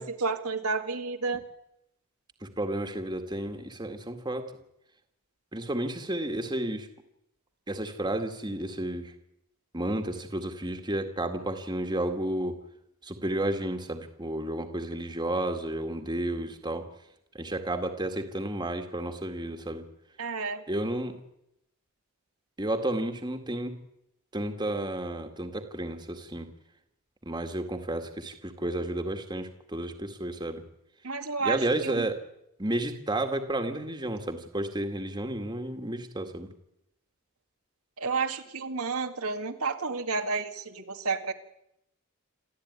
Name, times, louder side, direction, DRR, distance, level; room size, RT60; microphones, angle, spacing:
voice 1, 0.0-1.4 20.2-20.6 31.0-32.1 38.0-41.3, right 4 dB, 85° right, 5 dB, 2.0 m, -31 dB
voice 2, 2.4-4.5 5.5-6.9 7.7-9.1 9.7-12.6 13.0-16.8 17.3-19.8 20.7-21.2 22.6-23.8 24.3-26.5 27.2-30.6 31.4-32.2 32.6-36.5, right 1 dB, 20° right, 5 dB, 2.0 m, -32 dB
28.0 x 14.0 x 9.7 m, 0.82 s
head